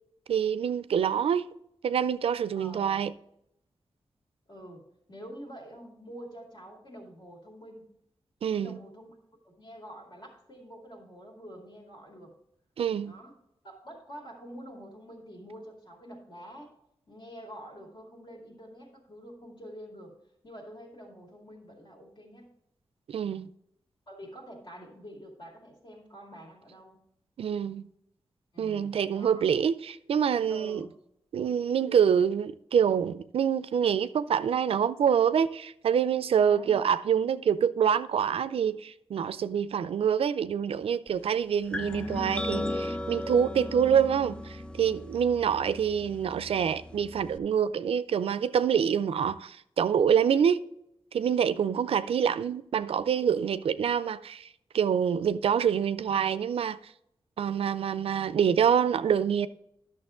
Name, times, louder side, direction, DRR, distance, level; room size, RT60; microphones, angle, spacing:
voice 1, 0.3-1.4 1.8-3.1 8.4-8.8 12.8-13.1 23.1-23.5 27.4-27.8 28.6-30.9 31.3-50.6 51.1-54.5 54.7-56.8 57.4-59.5, right 8 dB, 90° right, 0.4 m, -26 dB
voice 2, 2.5-3.0 4.5-7.9 8.6-9.1 9.4-12.3 13.0-13.4 13.6-16.7 17.1-20.1 20.4-22.5 24.1-27.0 28.5-29.5 30.5-30.9 36.4-36.8, equal, 50° left, 2.4 m, -47 dB
sound 1, 41.7-47.4, left 1 dB, 10° left, 0.3 m, -36 dB
11.0 x 6.5 x 3.7 m
wide cardioid pair, 125°, 10 cm